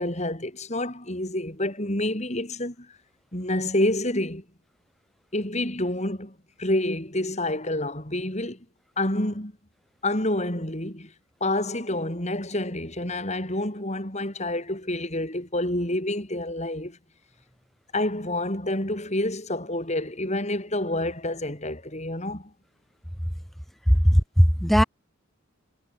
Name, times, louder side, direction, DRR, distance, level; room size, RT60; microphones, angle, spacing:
voice 1, 0.0-2.9 3.3-4.4 5.3-8.6 9.0-9.5 10.0-11.1 11.4-17.0 17.9-22.5, left 1 dB, 35° left, 4.9 m, -28 dB
voice 2, 23.9-24.8, equal, ahead, 1.7 m, -18 dB
head